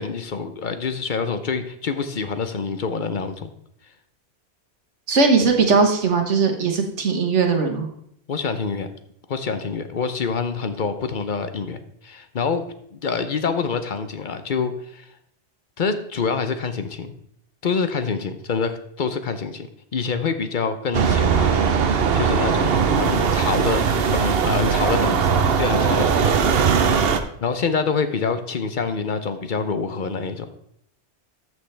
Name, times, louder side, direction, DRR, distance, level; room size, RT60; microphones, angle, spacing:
voice 1, 0.0-3.5 8.3-8.9 9.3-11.8 12.0-12.6 12.9-15.1 15.8-17.1 17.6-19.7 19.9-23.8 24.1-26.4 27.4-30.5, left 5 dB, 50° left, 10 dB, 0.8 m, -26 dB
voice 2, 5.1-7.9, right 4 dB, 85° right, 3 dB, 1.5 m, -19 dB
sound 1, 20.9-27.2, right 6 dB, 60° right, 0.9 m, -19 dB
13.0 x 6.2 x 3.3 m, 0.71 s
omnidirectional pair, 1.2 m